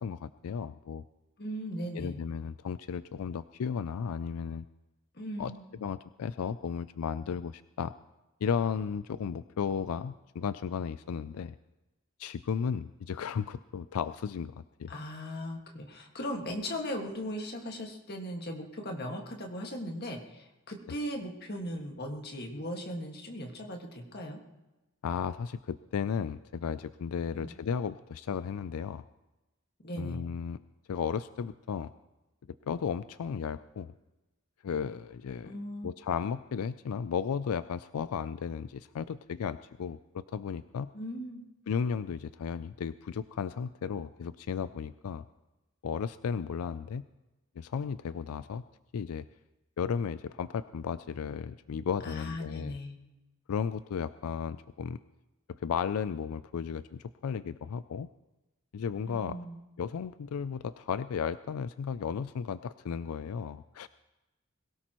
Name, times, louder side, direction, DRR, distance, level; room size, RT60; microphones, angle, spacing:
voice 1, 0.0-1.0 1.9-4.7 5.4-5.5 5.8-7.9 8.4-11.6 12.2-14.5 14.8-15.0 25.0-29.0 30.0-30.6 30.9-31.9 32.7-33.9 34.6-35.5 35.8-40.9 41.7-45.3 45.8-47.0 47.6-48.6 48.9-49.2 49.8-52.8 53.5-55.0 55.5-58.1 58.7-59.4 59.8-63.9, left 7 dB, 90° left, 14 dB, 0.4 m, -34 dB
voice 2, 1.4-2.2 5.1-5.6 14.9-24.4 27.3-27.5 29.8-30.3 35.4-36.0 40.9-41.4 52.0-53.0 59.1-59.6, equal, 45° left, 2 dB, 1.8 m, -38 dB
22.0 x 17.0 x 3.0 m, 1.0 s
head